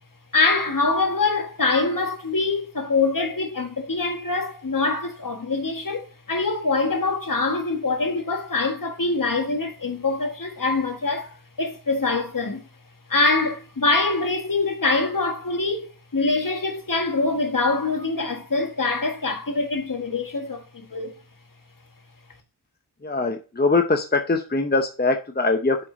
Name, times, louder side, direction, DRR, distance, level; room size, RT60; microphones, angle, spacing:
voice 1, 0.3-12.6 13.1-21.1, left 3 dB, 50° left, 1.7 m, -24 dB
voice 2, 23.0-25.8, left 3 dB, 25° left, 0.8 m, -22 dB
7.6 x 4.9 x 3.9 m
wide cardioid pair, 70°, 41 cm